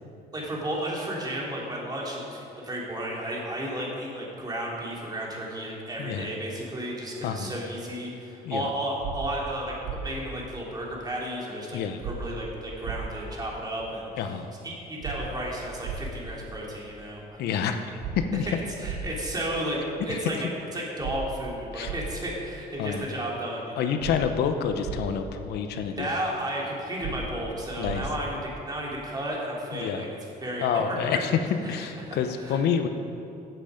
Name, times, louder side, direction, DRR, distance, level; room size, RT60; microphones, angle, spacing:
voice 1, 0.3-9.7 10.0-17.4 18.3-18.5 18.8-24.1 25.9-31.2 31.6-32.6, right 1 dB, 25° right, -4 dB, 3.3 m, -33 dB
voice 2, 6.0-6.3 7.2-7.5 8.4-8.7 11.7-12.0 14.2-14.5 17.4-18.5 20.1-20.2 21.7-21.9 22.8-23.1 23.8-26.1 27.8-28.1 29.7-30.0 30.6-32.9, left 7 dB, 75° left, 7 dB, 0.8 m, -28 dB
sound 1, 9.0-9.1 9.8-10.0 12.0-12.2 12.8-13.0 15.0-15.2 15.8-16.0 18.0-18.1 18.8-19.0 21.0-21.1 21.8-22.0 24.0-24.2 24.8-25.0 27.0-27.1 27.8-28.0, right 10 dB, 80° right, 1.6 m, -34 dB
15.5 x 8.0 x 5.2 m, 2.7 s
cardioid pair, 110°, 17 cm